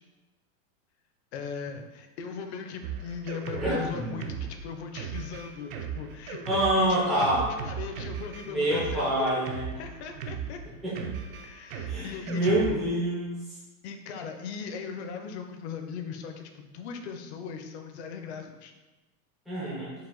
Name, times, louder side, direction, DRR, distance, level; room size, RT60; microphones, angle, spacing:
voice 1, 1.3-9.3 9.8-10.6 11.4-12.8 13.8-18.7, left 6 dB, 50° left, 6 dB, 0.6 m, -39 dB
Drum kit, 2.8-12.9, right 6 dB, 65° right, 0.7 m, -38 dB
voice 2, 3.6-4.0 6.5-7.5 8.5-9.7 10.8-11.0 11.9-13.4 19.5-19.9, right 1 dB, ahead, -10 dB, 0.3 m, -26 dB
4.9 x 2.4 x 3.7 m, 1.1 s
supercardioid pair, 155°, 45 cm